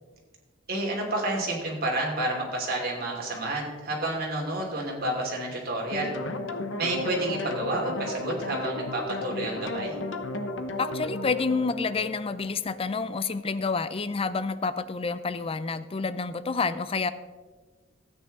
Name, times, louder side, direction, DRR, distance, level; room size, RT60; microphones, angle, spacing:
voice 1, 0.7-6.1 6.8-9.9, right 2 dB, 55° right, -2 dB, 2.8 m, -30 dB
sound 1, 5.9-12.9, left 2 dB, 85° left, 0.9 m, -34 dB
voice 2, 10.8-17.1, left 4 dB, 30° left, 14 dB, 0.5 m, -29 dB
13.5 x 9.0 x 3.6 m, 1.4 s
head